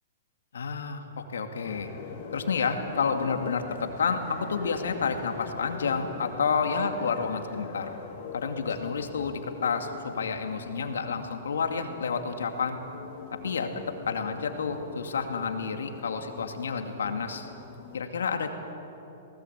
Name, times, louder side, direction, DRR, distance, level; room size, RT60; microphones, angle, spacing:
voice 1, 0.5-1.9 2.3-7.9 8.3-12.8 13.3-17.5 17.9-18.5, left 5 dB, 80° left, 6 dB, 2.3 m, -30 dB
sound 1, 1.6-18.0, left 5 dB, 50° left, 3.6 m, -43 dB
23.5 x 18.5 x 8.3 m, 3.0 s
hypercardioid pair, 120°, 0 cm